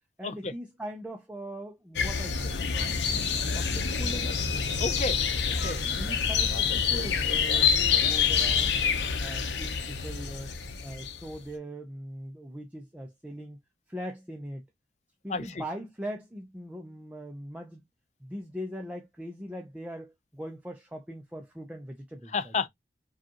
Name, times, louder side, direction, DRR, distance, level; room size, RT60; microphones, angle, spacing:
voice 1, 0.2-3.0 3.5-4.4 5.8-8.8 9.2-10.5 10.8-13.6 13.9-14.7 15.2-17.8 18.2-22.5, equal, 10° right, 0.5 m, -40 dB
sound 1, 2.0-11.4, left 6 dB, 80° left, 0.7 m, -27 dB
voice 2, 4.8-6.0 15.3-15.6 22.3-22.7, left 4 dB, 40° left, 0.5 m, -32 dB
5.0 x 2.4 x 2.8 m
head